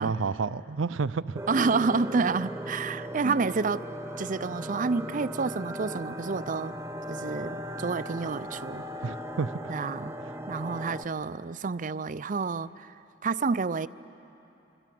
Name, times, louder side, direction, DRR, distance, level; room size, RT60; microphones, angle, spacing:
voice 1, 0.0-1.4 3.2-3.4 9.0-9.5, right 4 dB, 90° right, 0.6 m, -30 dB
sound 1, 1.4-11.1, equal, 15° right, 1.0 m, -38 dB
voice 2, 1.5-3.9 4.2-6.7 7.1-8.9 9.7-10.1 10.5-12.9 13.2-13.9, right 4 dB, 45° right, 0.5 m, -29 dB
27.5 x 24.0 x 7.7 m
head